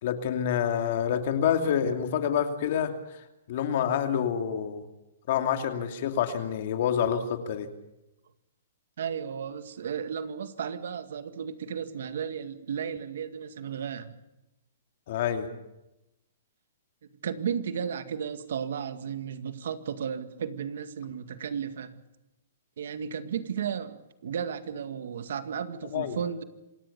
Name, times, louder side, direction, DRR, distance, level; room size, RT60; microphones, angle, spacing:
voice 1, 0.0-2.9 3.5-4.9 5.3-7.7 15.1-15.5 25.9-26.2, left 8 dB, 55° left, 2.8 m, -27 dB
voice 2, 9.0-14.2 17.2-22.0 22.8-26.4, right 7 dB, 70° right, 2.0 m, -34 dB
27.0 x 18.0 x 6.9 m
hypercardioid pair, 145°, 0 cm